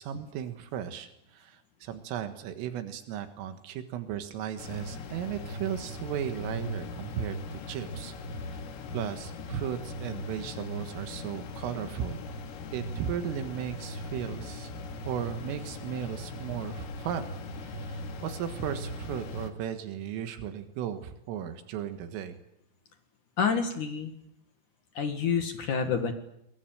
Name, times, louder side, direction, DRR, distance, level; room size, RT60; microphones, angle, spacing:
voice 1, 0.0-8.6 8.9-12.2 12.7-14.7 15.1-22.4, right 9 dB, 85° right, 8 dB, 4.1 m, -36 dB
sound 1, 4.6-19.5, left 1 dB, 80° left, 4.9 m, -39 dB
voice 2, 23.4-24.1 24.9-26.1, left 6 dB, 55° left, 6 dB, 2.5 m, -28 dB
24.5 x 23.0 x 9.1 m, 0.80 s
omnidirectional pair, 5.7 m